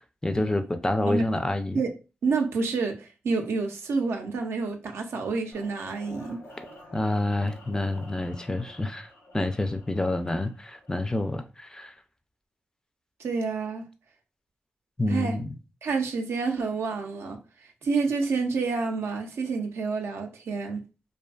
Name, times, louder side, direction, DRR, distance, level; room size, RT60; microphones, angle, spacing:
voice 1, 0.2-1.8 6.9-9.1 9.3-11.9 15.0-15.5, left 1 dB, 15° left, 0.3 m, -28 dB
voice 2, 2.2-6.4 13.2-13.9 15.1-15.4 15.8-20.8, right 4 dB, 80° right, 0.5 m, -28 dB
sound 1, 5.5-11.5, left 1 dB, 85° left, 0.9 m, -49 dB
2.5 x 2.3 x 2.3 m
cardioid pair, 50°, 4 cm